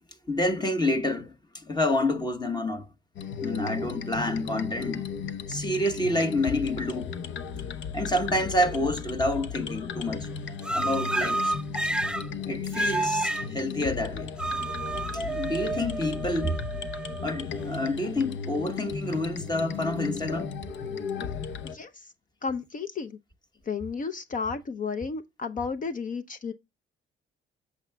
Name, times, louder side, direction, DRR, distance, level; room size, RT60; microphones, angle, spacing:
voice 1, 0.3-2.9 3.4-5.0 5.5-7.2 7.9-10.3 10.7-11.5 12.5-14.3 15.1-16.6 17.2-20.5, left 1 dB, 20° left, 1.1 m, -28 dB
sound 1, 3.2-21.8, left 6 dB, 70° left, 0.8 m, -35 dB
sound 2, 10.6-12.3 12.7-13.5 14.4-17.6, right 2 dB, 5° right, 0.4 m, -30 dB
voice 2, 21.6-22.1 22.4-23.2 23.7-26.5, left 5 dB, 40° left, 0.7 m, -33 dB
8.2 x 7.1 x 2.2 m
cardioid pair, 90°, 20 cm